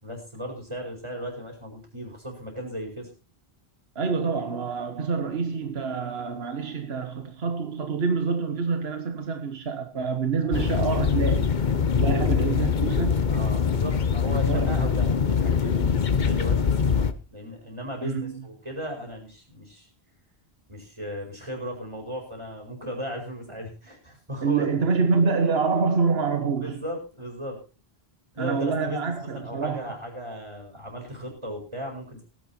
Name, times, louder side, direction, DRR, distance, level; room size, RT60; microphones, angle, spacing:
voice 1, 0.0-3.1 10.4-10.7 12.0-12.4 13.3-19.9 20.7-24.7 26.6-27.6 28.3-32.2, equal, 30° right, 4.8 m, -36 dB
voice 2, 3.9-11.5 12.0-13.2 14.3-14.9 18.0-18.3 24.4-26.8 28.4-29.8, right 5 dB, 75° right, 1.5 m, -26 dB
sound 1, 10.5-17.1, left 6 dB, 50° left, 1.0 m, -23 dB
17.0 x 10.5 x 4.4 m
omnidirectional pair, 1.1 m